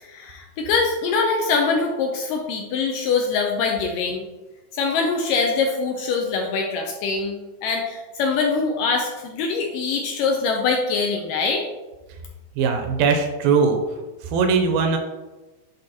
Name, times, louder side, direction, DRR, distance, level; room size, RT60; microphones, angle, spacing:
voice 1, 0.0-4.3 4.7-11.6, left 4 dB, 80° left, 1 dB, 2.0 m, -23 dB
voice 2, 12.6-13.8 14.2-15.0, right 5 dB, 80° right, 4 dB, 2.2 m, -20 dB
10.5 x 3.6 x 2.8 m, 1.1 s
omnidirectional pair, 4.3 m